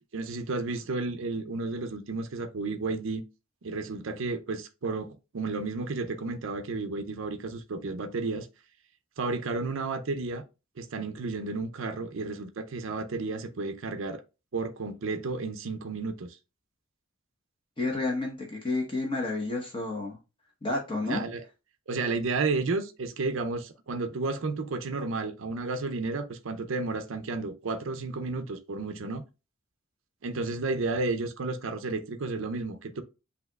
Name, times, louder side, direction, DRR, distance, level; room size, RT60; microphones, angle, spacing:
voice 1, 0.1-3.2 3.6-8.5 9.2-10.4 10.8-14.2 14.5-16.4 21.0-21.4 21.9-29.2 30.2-33.0, right 3 dB, 65° right, 0.5 m, -32 dB
voice 2, 17.8-20.2 20.6-21.2, left 2 dB, 25° left, 0.9 m, -30 dB
7.8 x 2.9 x 2.3 m
head